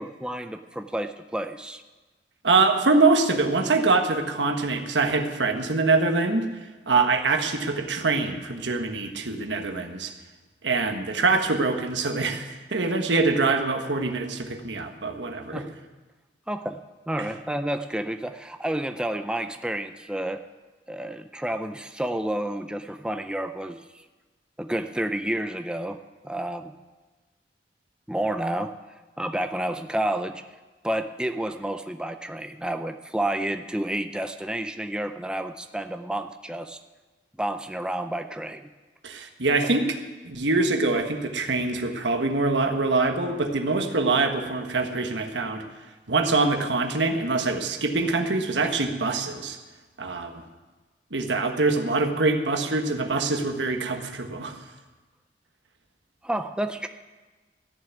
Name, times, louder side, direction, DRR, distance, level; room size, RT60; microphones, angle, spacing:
voice 1, 0.0-1.8 15.5-15.7 16.5-16.8 17.1-20.4 20.9-23.8 24.6-26.7 28.1-28.7 29.2-30.4 30.8-36.8 37.4-38.7 56.2-56.9, right 1 dB, 5° right, 8 dB, 0.5 m, -30 dB
voice 2, 2.4-6.5 6.9-10.1 10.6-15.7 17.2-17.3 39.0-39.8 40.2-45.6 46.1-49.6 50.0-50.3 51.1-54.6, right 3 dB, 80° right, 5 dB, 1.4 m, -24 dB
14.0 x 7.0 x 9.3 m, 1.2 s
head